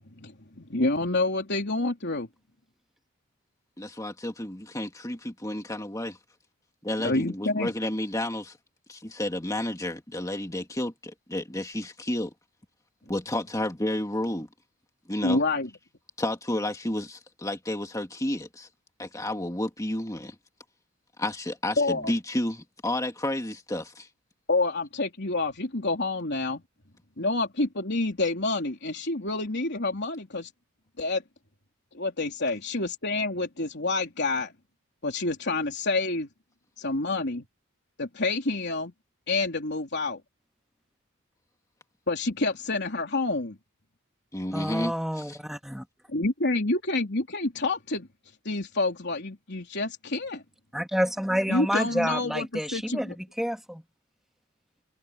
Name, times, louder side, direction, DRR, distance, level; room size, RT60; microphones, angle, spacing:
voice 1, 0.2-2.3 7.0-7.7 15.2-15.7 21.8-22.1 24.5-26.6 27.2-30.5 31.0-31.2 31.9-34.5 35.0-36.3 36.8-37.5 38.0-38.9 39.3-40.2 42.1-43.6 46.1-48.1 48.5-50.4 51.5-53.1, left 2 dB, 55° left, 3.5 m, -28 dB
voice 2, 3.8-6.2 6.8-8.6 8.9-12.3 13.1-14.5 15.1-15.4 16.2-18.7 19.0-20.4 21.2-24.1 44.3-45.4, left 1 dB, 15° left, 2.1 m, -31 dB
voice 3, 44.5-45.8 50.7-53.1 53.4-53.8, equal, ahead, 2.1 m, -28 dB
head